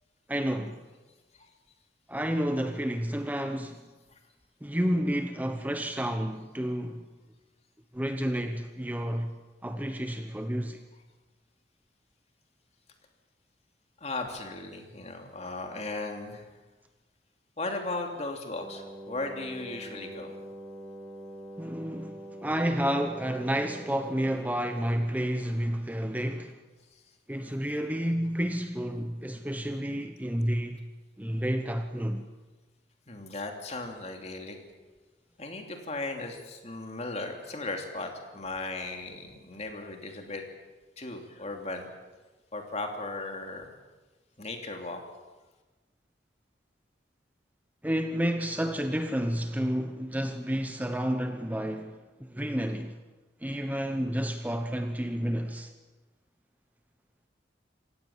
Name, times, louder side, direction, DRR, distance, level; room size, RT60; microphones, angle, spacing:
voice 1, 0.3-0.8 2.1-3.8 4.6-7.1 7.9-9.3 9.6-10.8 21.6-26.6 27.3-30.9 31.2-32.3 47.8-53.0 53.4-55.7, equal, 10° right, 0.9 m, -30 dB
voice 2, 14.0-16.5 17.6-20.4 33.1-34.6 35.4-40.4 41.0-41.9 42.5-43.7 44.4-45.0, left 2 dB, 35° left, 3.0 m, -36 dB
Wind instrument woodwind instrument, 18.6-25.1, right 1 dB, 10° left, 2.4 m, -44 dB
27.0 x 17.0 x 7.4 m
head